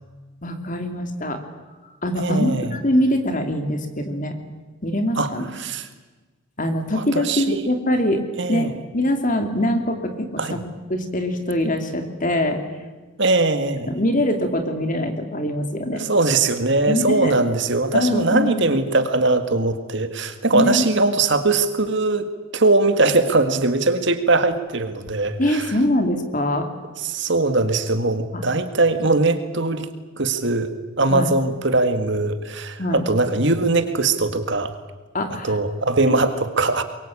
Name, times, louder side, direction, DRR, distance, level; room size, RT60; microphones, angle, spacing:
voice 1, 0.4-1.4 2.0-4.3 4.8-5.5 6.6-8.2 8.5-12.6 13.9-16.1 16.9-17.3 17.9-18.7 20.5-20.8 25.4-26.7 28.3-28.4 31.1-31.3 32.8-33.0 35.1-35.6 36.1-36.2 36.6-36.7, left 1 dB, 35° left, 6 dB, 2.6 m, -23 dB
voice 2, 2.2-2.8 5.2-5.3 5.6-5.9 6.9-7.6 8.4-8.7 10.4-10.6 13.2-13.9 15.9-22.3 22.5-25.7 27.0-29.9 30.2-34.7 35.4-36.8, right 3 dB, 55° right, 9 dB, 1.8 m, -21 dB
23.0 x 23.0 x 8.6 m, 1.3 s
head